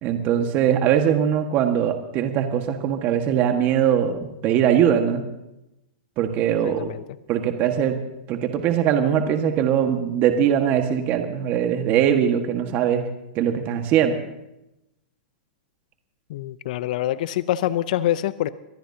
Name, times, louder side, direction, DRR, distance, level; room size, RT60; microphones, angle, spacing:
voice 1, 0.0-5.3 6.2-6.9 7.3-8.0 8.3-13.0 13.3-14.2, right 9 dB, 35° right, 5 dB, 1.6 m, -21 dB
voice 2, 6.6-7.0 16.3-18.5, left 13 dB, 60° left, 15 dB, 0.6 m, -25 dB
25.5 x 19.5 x 2.8 m, 0.91 s
hypercardioid pair, 130°, 5 cm